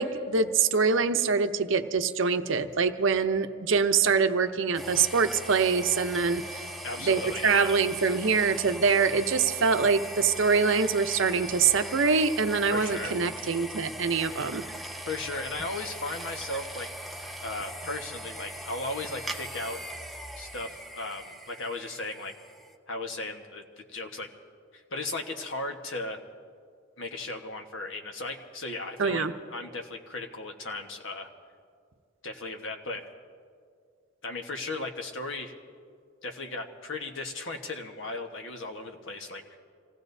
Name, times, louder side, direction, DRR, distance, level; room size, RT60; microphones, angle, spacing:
voice 1, 0.0-6.6 7.1-14.6 29.0-29.3, right 5 dB, 70° right, 8 dB, 0.7 m, -24 dB
sound 1, 4.7-22.7, right 1 dB, ahead, 0.5 m, -40 dB
voice 2, 6.8-7.8 12.7-13.2 15.1-16.9 17.4-19.8 20.4-22.3 22.9-24.3 24.7-26.2 27.0-29.2 29.5-31.3 32.2-33.0 34.2-35.5 36.2-39.6, left 2 dB, 70° left, 4 dB, 1.3 m, -36 dB
26.5 x 17.5 x 2.7 m, 2.2 s
head